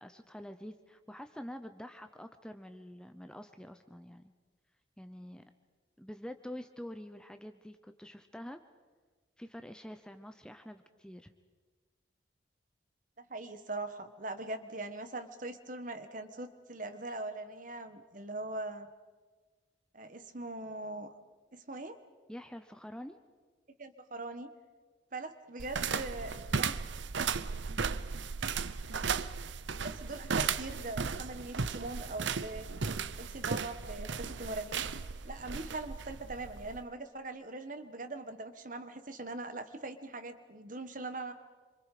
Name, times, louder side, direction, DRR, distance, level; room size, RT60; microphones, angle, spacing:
voice 1, 0.0-4.3 5.0-5.4 6.0-8.6 9.4-11.3 22.3-23.2, equal, 5° left, 8 dB, 0.7 m, -46 dB
voice 2, 13.2-18.9 19.9-21.1 21.5-22.0 23.8-24.5 25.1-26.7 29.8-32.7 33.2-34.8 35.2-41.3, right 2 dB, 40° right, 9 dB, 1.5 m, -41 dB
sound 1, 25.6-36.8, right 5 dB, 70° right, 0.8 m, -36 dB
27.5 x 26.0 x 5.0 m, 1.4 s
head